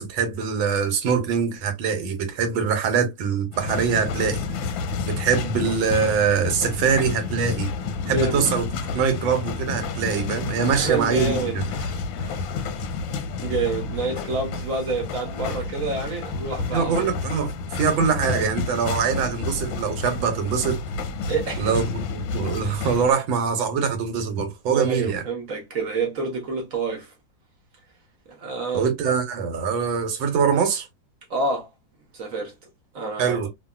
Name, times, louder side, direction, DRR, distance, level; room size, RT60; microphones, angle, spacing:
voice 1, 0.0-4.4 5.0-7.7 8.1-11.6 16.7-20.8 21.6-25.2 28.7-30.9 33.2-33.5, right 6 dB, 85° right, 1.5 m, -23 dB
sound 1, 3.5-23.1, left 4 dB, 90° left, 1.4 m, -30 dB
voice 2, 8.0-8.5 10.7-12.5 13.4-17.1 21.3-21.8 22.8-22.9 24.7-27.1 28.3-28.9 31.3-31.7 32.1-32.5 32.9-33.5, right 3 dB, 55° right, 1.1 m, -28 dB
2.8 x 2.7 x 2.2 m
omnidirectional pair, 2.1 m